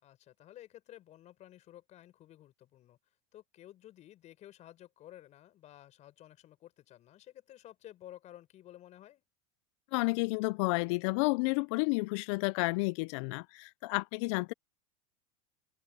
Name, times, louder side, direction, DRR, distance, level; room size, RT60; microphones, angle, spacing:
voice 1, 0.0-3.0 3.3-9.2, left 13 dB, 40° left, 5.5 m, -53 dB
voice 2, 9.9-14.5, left 27 dB, 60° left, 0.9 m, -31 dB
hypercardioid pair, 90°, 17 cm